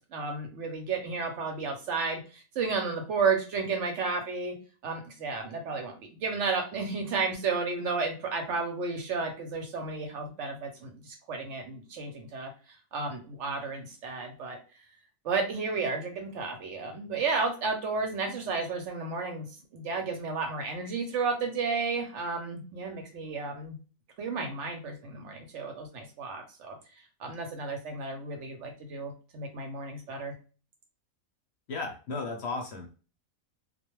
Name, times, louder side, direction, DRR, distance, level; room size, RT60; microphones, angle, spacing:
voice 1, 0.1-4.5 4.8-12.5 12.9-14.6 15.2-19.5 19.7-23.8 24.2-26.8 27.2-30.3, right 4 dB, 65° right, 3 dB, 0.8 m, -32 dB
voice 2, 31.7-32.9, left 3 dB, 60° left, 2 dB, 0.8 m, -34 dB
2.3 x 2.2 x 3.0 m, 0.36 s
omnidirectional pair, 1.5 m